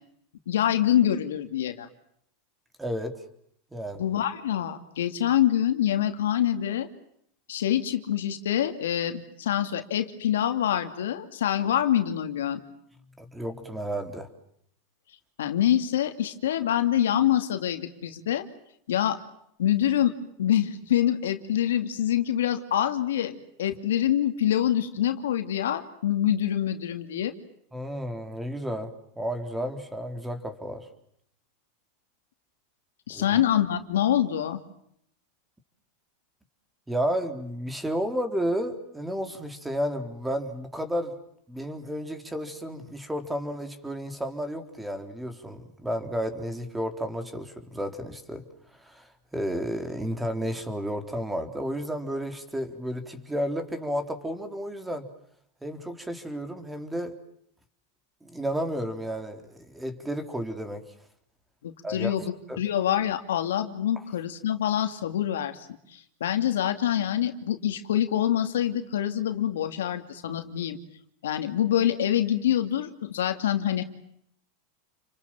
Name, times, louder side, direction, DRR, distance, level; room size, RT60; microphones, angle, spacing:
voice 1, 0.5-1.9 3.9-6.9 7.5-12.6 15.4-18.4 18.9-19.2 19.6-20.1 20.4-27.3 33.1-34.6 61.6-65.7 65.9-70.8 71.2-73.8, left 11 dB, 90° left, 7 dB, 2.6 m, -25 dB
voice 2, 2.8-3.2 3.7-4.0 13.2-14.3 27.7-30.9 33.1-33.4 36.9-41.2 41.5-48.5 48.7-55.1 55.6-57.2 58.2-60.8 61.8-62.6 64.0-64.1, equal, 10° right, 7 dB, 3.8 m, -32 dB
30.0 x 24.5 x 7.5 m, 0.71 s
supercardioid pair, 125°, 0 cm